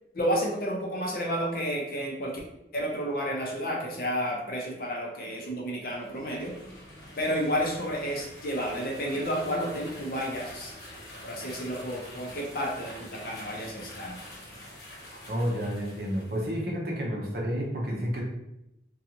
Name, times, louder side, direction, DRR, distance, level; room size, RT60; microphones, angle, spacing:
voice 1, 0.1-2.3 2.7-6.5 7.2-10.7 11.2-14.2, equal, 55° left, -1 dB, 0.6 m, -31 dB
sound 1, 5.8-16.6, left 1 dB, 70° left, 1.0 m, -46 dB
voice 2, 15.3-18.2, equal, 55° right, -1 dB, 0.6 m, -30 dB
2.5 x 2.3 x 2.8 m, 0.86 s
head